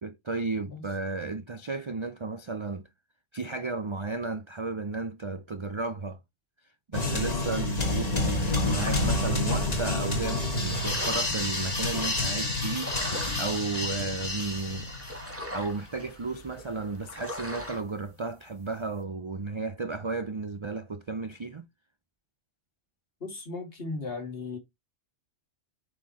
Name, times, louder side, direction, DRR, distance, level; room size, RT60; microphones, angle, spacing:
voice 1, 0.0-2.9 3.3-6.2 6.9-14.9 15.5-21.7, right 3 dB, 40° right, 0.4 m, -33 dB
sound 1, 6.9-15.4, left 2 dB, 35° left, 1.8 m, -29 dB
sound 2, 8.2-17.8, left 1 dB, 10° right, 1.7 m, -42 dB
voice 2, 23.2-24.6, left 3 dB, 50° left, 2.6 m, -36 dB
7.6 x 4.6 x 4.1 m
omnidirectional pair, 1.2 m